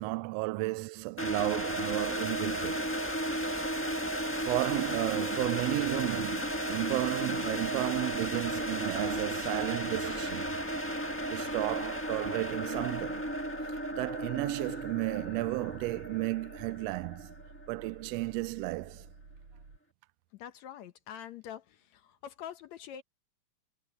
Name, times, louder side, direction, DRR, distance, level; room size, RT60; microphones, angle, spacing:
voice 1, 0.0-2.8 4.4-10.5 11.3-13.3 13.9-17.3 17.7-19.1, right 20 dB, 80° right, 1.5 m, -33 dB
sound 1, 1.2-18.0, equal, 10° left, 0.6 m, -34 dB
sound 2, 7.3-19.8, right 4 dB, 60° right, 5.3 m, -54 dB
voice 2, 20.3-23.0, left 9 dB, 75° left, 2.2 m, -45 dB
omnidirectional pair, 3.4 m